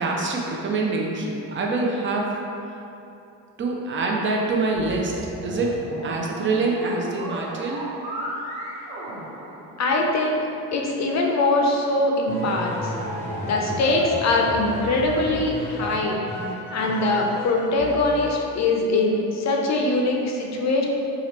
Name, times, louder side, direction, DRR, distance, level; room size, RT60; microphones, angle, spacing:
voice 1, 0.0-2.3 3.6-5.1 5.4-5.8 6.0-7.9, right 3 dB, 35° right, -1 dB, 0.5 m, -25 dB
sound 1, 4.7-10.2, right 1 dB, 90° right, 0.7 m, -35 dB
voice 2, 9.8-10.4 10.7-12.9 13.4-16.2 16.7-20.8, left 2 dB, 50° left, 0 dB, 0.5 m, -22 dB
sound 2, 12.3-18.8, equal, 5° left, 0.8 m, -33 dB
2.8 x 2.5 x 3.1 m, 2.7 s
supercardioid pair, 75°, 36 cm